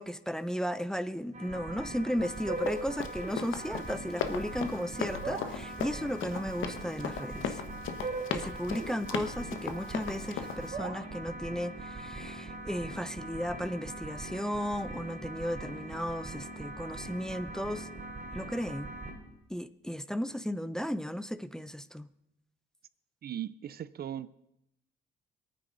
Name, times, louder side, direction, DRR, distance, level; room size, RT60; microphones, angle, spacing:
voice 1, 0.0-7.6 8.3-17.9 18.3-18.9 19.5-22.1, equal, 5° left, 13 dB, 0.6 m, -35 dB
sound 1, 1.3-19.1, right 2 dB, 35° right, 3.7 m, -41 dB
Run, 2.2-10.7, left 7 dB, 80° left, 1.2 m, -37 dB
voice 2, 23.2-24.3, right 10 dB, 50° right, 18 dB, 0.5 m, -38 dB
26.0 x 9.3 x 3.9 m, 0.81 s
cardioid pair, 90°, 20 cm